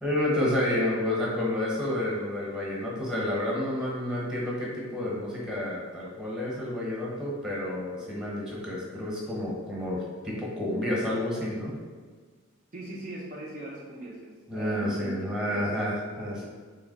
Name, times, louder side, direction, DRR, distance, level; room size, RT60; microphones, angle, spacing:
voice 1, 0.0-11.8 14.5-16.5, left 1 dB, 5° right, -5 dB, 0.9 m, -30 dB
voice 2, 12.7-16.5, right 1 dB, 40° right, -4 dB, 0.5 m, -41 dB
3.4 x 2.8 x 3.9 m, 1.5 s
head